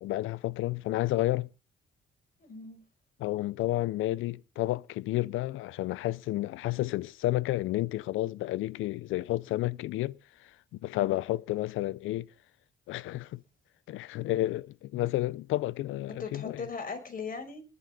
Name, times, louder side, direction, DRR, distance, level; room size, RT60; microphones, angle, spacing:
voice 1, 0.0-1.5 3.2-10.5 10.8-12.3 12.9-13.4 13.9-16.7, left 16 dB, 85° left, 0.6 m, -31 dB
voice 2, 2.4-2.9 16.1-17.6, left 5 dB, 45° left, 5.8 m, -39 dB
20.5 x 7.9 x 5.5 m
cardioid pair, 90°, 20 cm